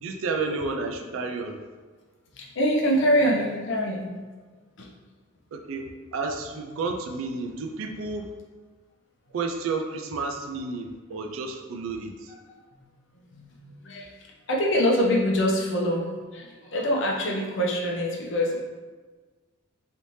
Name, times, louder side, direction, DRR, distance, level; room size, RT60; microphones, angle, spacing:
voice 1, 0.0-1.6 5.5-8.3 9.3-12.3, right 3 dB, 80° right, 4 dB, 0.4 m, -31 dB
voice 2, 2.3-4.1 4.8-4.9 12.5-12.8 13.1-14.2 14.5-18.6, equal, 65° left, -2 dB, 0.6 m, -25 dB
3.3 x 2.7 x 3.0 m, 1.4 s
head